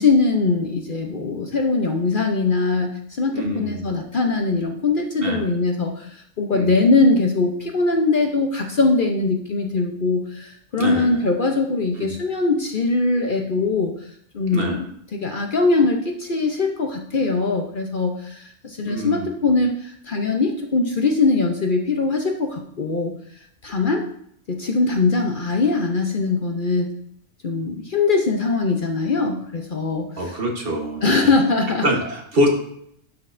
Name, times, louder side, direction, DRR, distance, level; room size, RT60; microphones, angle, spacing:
voice 1, 0.0-13.9 14.3-14.9 15.1-23.1 23.6-24.0 24.5-26.9 27.4-30.3 31.0-31.9, left 3 dB, 45° left, 3 dB, 0.8 m, -21 dB
voice 2, 3.3-3.8 5.2-5.4 6.5-6.7 10.8-11.2 12.0-12.1 14.5-14.8 18.8-19.3 30.2-31.3 31.8-32.5, equal, 50° right, 1 dB, 1.4 m, -24 dB
11.5 x 6.2 x 2.6 m, 0.68 s
omnidirectional pair, 1.3 m